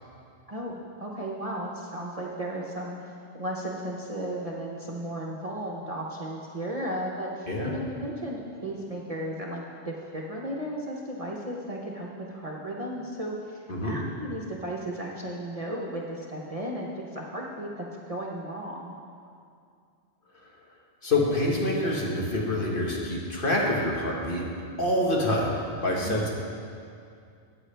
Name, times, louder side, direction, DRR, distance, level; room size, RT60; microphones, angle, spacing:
voice 1, 0.5-18.9 26.0-26.3, right 1 dB, 35° right, -2 dB, 0.8 m, -35 dB
voice 2, 21.0-24.4 24.8-26.3, left 1 dB, 45° left, -3 dB, 1.6 m, -26 dB
14.0 x 8.7 x 3.4 m, 2.4 s
omnidirectional pair, 1.2 m